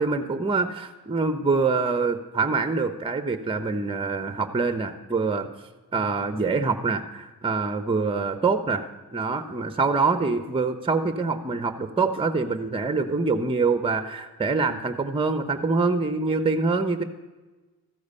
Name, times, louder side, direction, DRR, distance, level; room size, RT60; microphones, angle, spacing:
voice 1, 0.0-5.5 5.9-17.0, right 4 dB, 15° right, 9 dB, 0.8 m, -25 dB
14.0 x 6.6 x 5.5 m, 1.2 s
supercardioid pair, 55°, 38 cm